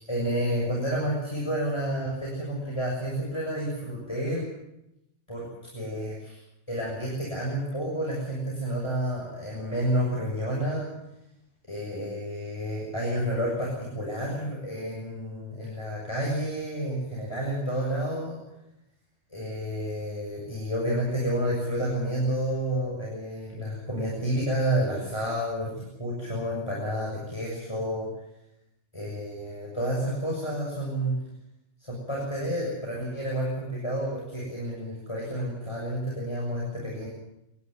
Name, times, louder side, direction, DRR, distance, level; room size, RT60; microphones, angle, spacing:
voice 1, 0.1-4.4 5.3-6.4 6.7-10.9 11.7-18.4 19.3-28.1 28.9-31.2 31.8-37.1, equal, 25° left, -4 dB, 6.7 m, -30 dB
28.0 x 12.0 x 9.5 m, 0.88 s
omnidirectional pair, 1.2 m